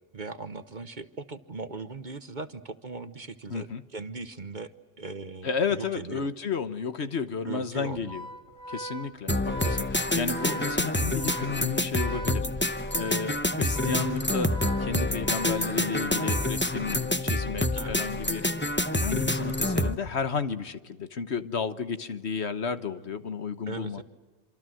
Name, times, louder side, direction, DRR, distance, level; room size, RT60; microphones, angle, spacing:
voice 1, 0.1-4.7 5.0-6.3 7.4-8.1 17.7-18.0 23.7-24.0, right 3 dB, 40° right, 12 dB, 1.1 m, -39 dB
voice 2, 3.5-3.8 5.4-8.2 8.7-18.5 18.9-24.0, left 5 dB, 60° left, 12 dB, 1.4 m, -33 dB
Organ, 7.9-17.1, right 2 dB, 90° right, 2.3 m, -41 dB
sound 1, 9.3-19.9, left 1 dB, 10° left, 0.9 m, -27 dB
26.5 x 26.5 x 7.7 m, 1.3 s
omnidirectional pair, 1.3 m